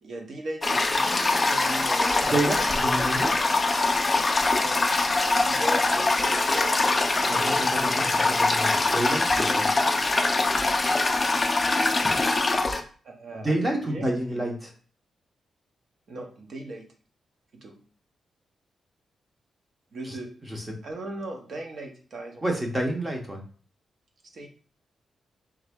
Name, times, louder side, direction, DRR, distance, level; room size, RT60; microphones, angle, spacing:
voice 1, 0.0-2.3 2.6-3.3 4.5-4.8 5.2-8.3 13.0-14.5 16.1-16.9 17.5-17.8 19.9-20.3 20.8-22.4 24.3-24.5, right 2 dB, 50° right, 3 dB, 0.8 m, -38 dB
Toilet flush, 0.6-12.8, left 3 dB, 20° left, 0.4 m, -23 dB
voice 2, 2.3-3.3 7.3-9.7 13.4-14.7 20.0-20.1 20.5-20.8 22.4-23.4, right 1 dB, 15° right, 1 dB, 0.7 m, -29 dB
3.5 x 3.2 x 3.5 m, 0.41 s
wide cardioid pair, 165°, 0 cm